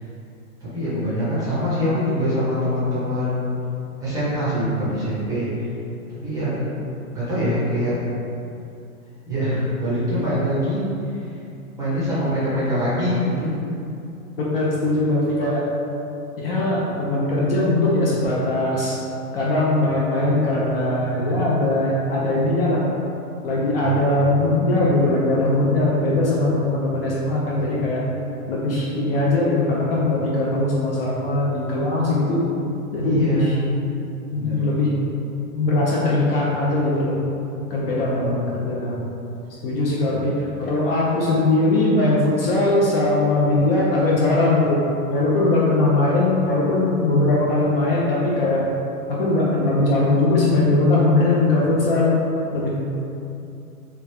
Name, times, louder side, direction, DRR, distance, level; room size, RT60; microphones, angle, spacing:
voice 1, 0.6-3.5 4.0-5.5 6.2-6.5 7.1-8.0 9.3-10.9 11.8-13.5 23.7-23.9 33.0-33.6 34.3-34.7, equal, 10° right, -11 dB, 0.6 m, -24 dB
voice 2, 14.5-15.6 16.4-19.0 19.3-22.8 23.4-28.0 28.5-32.4 32.9-33.6 34.3-35.0 35.5-37.2 37.7-39.0 39.6-44.8 45.1-48.6 49.1-52.2 52.5-52.7, left 2 dB, 40° left, -5 dB, 0.5 m, -20 dB
3.2 x 2.4 x 3.1 m, 2.7 s
hypercardioid pair, 140°, 44 cm